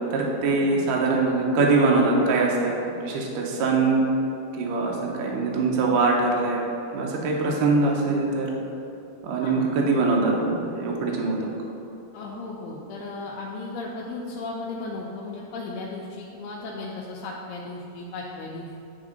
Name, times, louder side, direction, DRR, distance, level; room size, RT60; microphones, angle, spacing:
voice 1, 0.1-2.7 3.0-4.0 4.6-6.6 6.9-8.5 9.2-11.5, right 3 dB, 80° right, -2 dB, 1.9 m, -23 dB
voice 2, 12.1-18.8, left 3 dB, 85° left, -4 dB, 2.5 m, -35 dB
10.0 x 3.6 x 3.9 m, 2.8 s
omnidirectional pair, 4.7 m